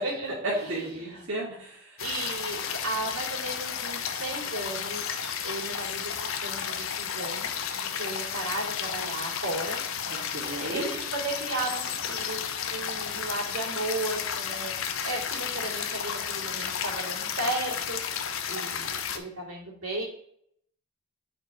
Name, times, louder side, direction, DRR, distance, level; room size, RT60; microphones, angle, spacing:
voice 1, 0.0-1.3 2.0-9.8 10.7-20.0, right 2 dB, 90° right, -5 dB, 2.7 m, -35 dB
voice 2, 0.7-2.0 10.1-10.9, right 2 dB, 75° right, -8 dB, 1.9 m, -35 dB
sound 1, 2.0-19.2, left 7 dB, 70° left, 0.7 m, -33 dB
4.7 x 4.5 x 4.8 m, 0.69 s
head